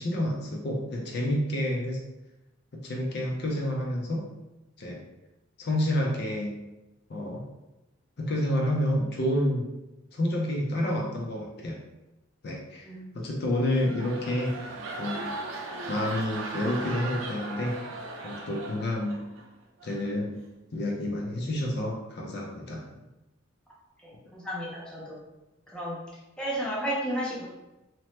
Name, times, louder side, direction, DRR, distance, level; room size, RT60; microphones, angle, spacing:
voice 1, 0.0-2.0 2.8-4.3 4.8-5.0 5.6-6.6 7.1-7.4 8.2-9.6 10.1-11.8 12.4-12.9 13.1-14.5 15.0-15.3 15.9-17.8 18.2-19.2 19.8-20.4 20.7-22.8, left 1 dB, 55° left, -1 dB, 0.5 m, -29 dB
sound 1, 13.5-19.4 19.8-20.1, right 3 dB, 85° right, 0.5 m, -38 dB
voice 2, 24.0-25.2 25.7-26.0 26.4-27.5, equal, 5° left, -6 dB, 0.6 m, -32 dB
2.9 x 2.1 x 3.1 m, 0.99 s
head